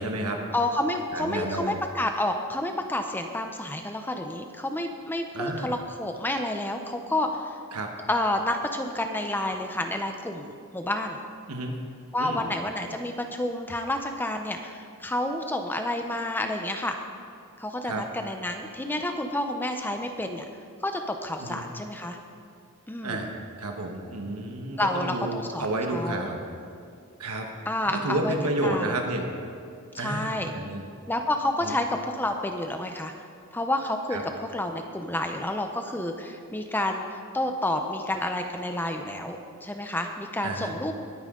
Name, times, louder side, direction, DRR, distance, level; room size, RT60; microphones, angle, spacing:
voice 1, 0.0-0.4 1.1-1.8 5.3-5.7 7.7-7.9 11.5-11.8 12.2-12.4 17.8-18.0 21.4-21.6 23.0-23.3 23.6-26.4 27.2-27.5 27.9-29.3 30.0-30.8 31.6-31.8 34.1-34.2 40.4-40.9, right 2 dB, 85° right, 2 dB, 1.3 m, -30 dB
voice 2, 0.5-7.6 8.1-11.2 12.1-17.0 17.6-20.5 20.8-22.2 22.9-23.3 24.8-26.3 27.7-28.3 28.6-29.0 29.9-30.5 31.1-33.1 33.5-40.9, left 1 dB, 10° left, 5 dB, 0.6 m, -29 dB
21.0 x 8.9 x 3.8 m, 2.3 s
head